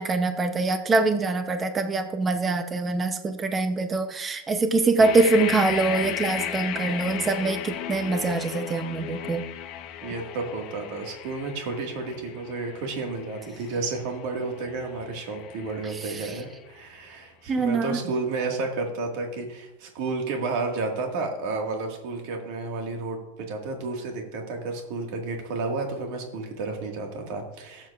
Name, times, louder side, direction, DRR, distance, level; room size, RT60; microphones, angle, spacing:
voice 1, 0.0-9.4 16.1-16.3 17.5-18.0, right 3 dB, 15° right, 8 dB, 0.6 m, -24 dB
sound 1, 5.0-16.8, left 10 dB, 40° left, 0.7 m, -35 dB
voice 2, 10.0-27.9, right 3 dB, 50° right, 2 dB, 1.6 m, -31 dB
17.5 x 7.6 x 2.4 m, 0.99 s
supercardioid pair, 155°, 0 cm